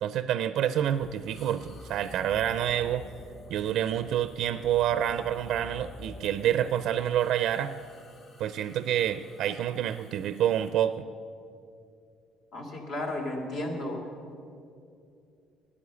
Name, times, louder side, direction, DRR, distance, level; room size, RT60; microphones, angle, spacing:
voice 1, 0.0-3.0 3.5-7.7 8.4-11.0, right 10 dB, 70° right, 12 dB, 0.4 m, -28 dB
sound 1, 0.9-10.7, left 2 dB, 50° left, 1.4 m, -49 dB
voice 2, 12.5-14.0, left 1 dB, 70° left, 0 dB, 2.8 m, -33 dB
12.5 x 9.8 x 6.9 m, 2.5 s
supercardioid pair, 80°, 0 cm